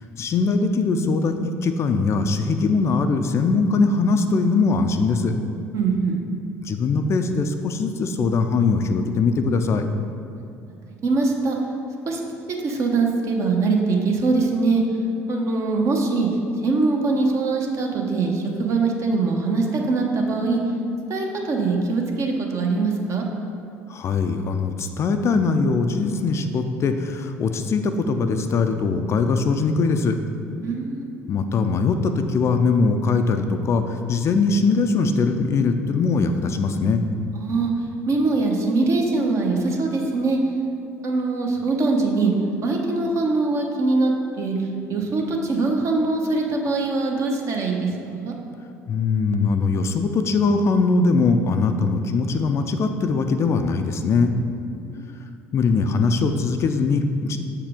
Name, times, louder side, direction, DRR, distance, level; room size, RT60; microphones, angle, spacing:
voice 1, 0.2-5.3 6.6-9.8 23.9-30.2 31.3-37.0 48.9-54.3 55.5-57.4, left 4 dB, 40° left, 7 dB, 0.4 m, -21 dB
voice 2, 5.7-6.2 11.0-11.6 12.1-12.2 12.6-14.8 15.3-16.3 16.6-20.6 21.1-23.2 30.6-31.1 37.3-37.7 38.1-40.4 41.0-42.3 42.6-44.5 44.9-48.3 54.7-55.1, right 3 dB, 40° right, 1 dB, 0.9 m, -22 dB
6.8 x 4.7 x 3.6 m, 2.6 s
figure-of-eight pair, 60°, 7 cm